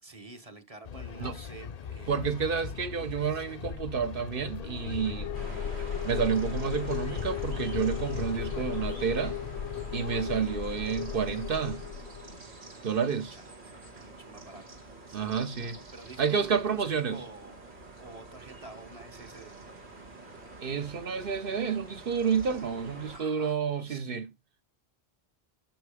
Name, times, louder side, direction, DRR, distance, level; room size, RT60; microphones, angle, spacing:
voice 1, 0.0-3.4 13.3-14.8 15.1-17.6 18.0-19.5 19.8-20.0 23.1-23.6 23.8-24.1, right 3 dB, 35° right, 1.2 m, -49 dB
sound 1, 0.8-11.6, left 7 dB, 45° left, 0.6 m, -42 dB
voice 2, 2.1-5.3 6.0-9.4 9.9-11.8 12.8-13.4 15.1-15.8 16.2-17.2 20.6-24.3, right 6 dB, 55° right, 1.2 m, -30 dB
sound 2, 4.6-12.4, left 8 dB, 75° left, 1.1 m, -36 dB
sound 3, 5.3-23.2, right 3 dB, 80° right, 2.5 m, -47 dB
12.0 x 4.6 x 5.0 m
omnidirectional pair, 1.1 m